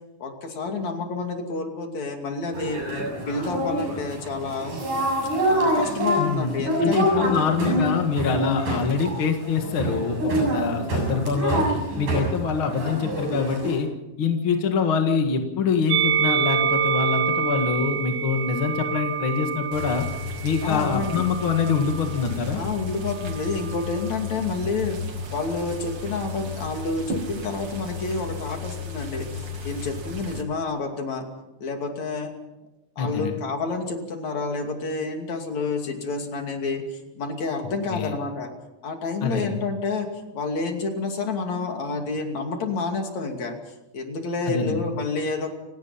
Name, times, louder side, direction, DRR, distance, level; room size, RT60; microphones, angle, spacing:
voice 1, 0.2-4.8 5.5-7.9 20.6-21.3 22.5-25.0 25.3-31.3 31.6-32.3 33.0-38.5 38.8-43.5 43.9-45.5, left 3 dB, 65° left, 3 dB, 3.9 m, -29 dB
sound 1, 2.5-13.8, right 1 dB, 85° right, 8.8 m, -26 dB
voice 2, 6.2-11.6 12.0-13.9 14.2-20.1 20.4-22.6 33.0-33.4 37.9-38.1 39.2-39.6 44.5-44.8, left 5 dB, 45° left, 4 dB, 2.4 m, -25 dB
Musical instrument, 15.9-22.3 23.1-24.1, right 7 dB, 65° right, 1.6 m, -27 dB
sound 2, 19.7-30.4, left 4 dB, 45° right, 2.9 m, -34 dB
29.5 x 18.0 x 5.7 m, 0.96 s
omnidirectional pair, 3.5 m